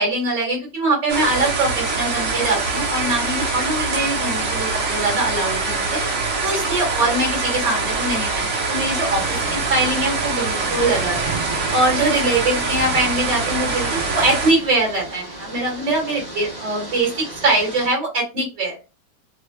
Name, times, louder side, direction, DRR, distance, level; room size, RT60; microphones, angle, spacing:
voice 1, 0.0-6.0 6.4-9.2 9.5-11.3 11.7-18.8, right 2 dB, 80° right, -4 dB, 2.8 m, -22 dB
sound 1, 1.1-14.5, right 3 dB, 50° right, 1.1 m, -24 dB
sound 2, 9.1-17.9, right 2 dB, 30° right, 1.0 m, -34 dB
4.8 x 2.3 x 2.3 m, 0.28 s
omnidirectional pair, 1.9 m